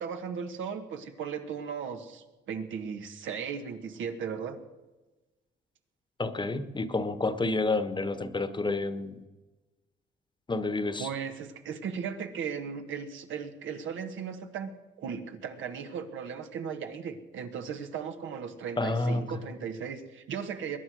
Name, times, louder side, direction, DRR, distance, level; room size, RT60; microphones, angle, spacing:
voice 1, 0.0-4.6 11.0-20.8, right 7 dB, 75° right, 6 dB, 1.6 m, -37 dB
voice 2, 6.2-9.2 10.5-11.1 18.8-19.2, left 2 dB, 25° left, 11 dB, 1.2 m, -29 dB
22.0 x 9.7 x 6.3 m, 1.2 s
cardioid pair, 90°, 20 cm